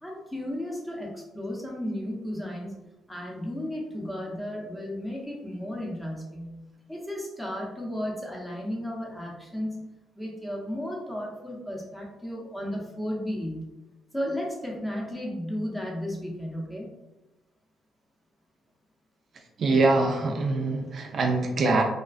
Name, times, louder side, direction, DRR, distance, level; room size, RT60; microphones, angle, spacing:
voice 1, 0.0-2.7 3.1-6.6 6.9-9.9 10.1-13.6 14.1-16.9, equal, 10° left, -2 dB, 0.7 m, -34 dB
voice 2, 19.6-21.8, right 3 dB, 50° right, 3 dB, 0.3 m, -23 dB
2.4 x 2.3 x 2.3 m, 0.99 s
cardioid pair, 90°, 0 cm